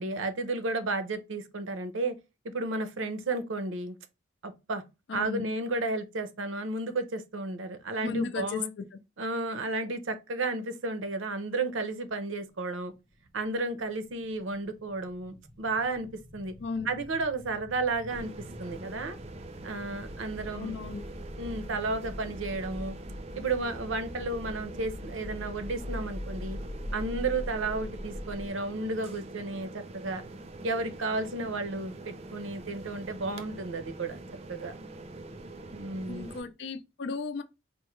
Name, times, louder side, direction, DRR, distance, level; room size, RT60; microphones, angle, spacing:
voice 1, 0.0-2.2 2.4-4.0 4.4-4.8 5.1-8.7 9.2-12.9 13.3-16.5 16.8-18.3 18.6-19.2 19.6-20.8 21.4-23.0 23.4-26.6 26.9-30.2 30.6-34.2 34.5-34.7 35.7-36.3, right 3 dB, 85° right, 0.6 m, -33 dB
voice 2, 5.1-5.5 8.0-8.9 16.6-16.9 20.5-21.0 36.1-37.4, left 4 dB, 65° left, 0.4 m, -35 dB
sound 1, 12.6-28.5, equal, ahead, 0.7 m, -43 dB
sound 2, 18.1-36.4, right 2 dB, 30° right, 0.3 m, -44 dB
4.5 x 2.1 x 3.0 m
head